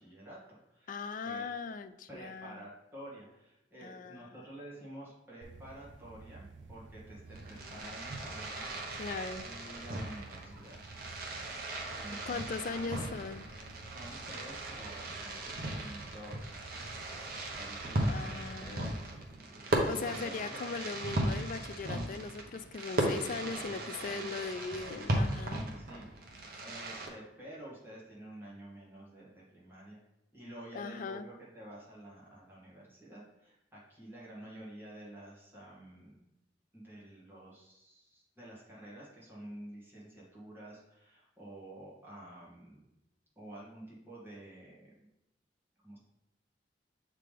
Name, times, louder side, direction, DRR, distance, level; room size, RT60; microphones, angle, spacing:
voice 1, 0.0-1.5 2.1-8.8 9.4-10.8 11.9-13.1 13.9-16.5 17.5-18.9 20.0-20.7 23.4-24.3 25.7-30.0 30.3-36.2 36.7-42.9 43.4-45.1 45.8-46.0, right 1 dB, 10° right, -7 dB, 1.9 m, -50 dB
voice 2, 0.9-2.7 3.8-4.3 9.0-9.5 12.3-13.4 18.1-18.9 19.9-25.6 30.7-31.2, left 4 dB, 45° left, 11 dB, 0.3 m, -39 dB
sound 1, 5.4-19.4, right 3 dB, 80° right, 0.6 m, -52 dB
Fireworks, 7.3-27.1, right 1 dB, 55° right, 0.9 m, -37 dB
7.6 x 3.7 x 3.3 m, 0.90 s
head